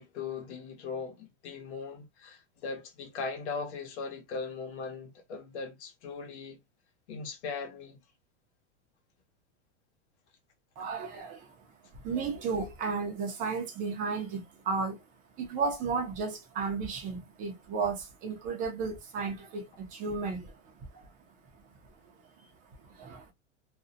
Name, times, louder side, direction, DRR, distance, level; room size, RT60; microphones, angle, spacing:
voice 1, 0.0-6.6 7.1-8.0, left 4 dB, 65° left, 1.0 m, -39 dB
voice 2, 10.8-11.5 11.9-15.0 15.4-20.6 20.9-21.0 22.8-23.3, right 4 dB, 20° right, 0.5 m, -34 dB
2.5 x 2.0 x 2.5 m
supercardioid pair, 155°, 36 cm